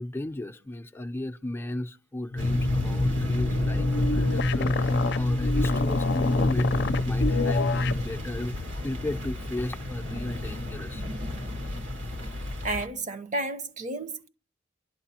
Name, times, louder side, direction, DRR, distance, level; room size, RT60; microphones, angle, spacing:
voice 1, 0.0-11.1, left 1 dB, 10° left, 0.6 m, -35 dB
sound 1, 2.3-8.0, left 2 dB, 60° left, 0.6 m, -25 dB
sound 2, 2.4-12.9, left 2 dB, 80° right, 1.9 m, -33 dB
voice 2, 12.6-14.3, right 2 dB, 40° right, 1.0 m, -32 dB
28.5 x 12.0 x 2.9 m
head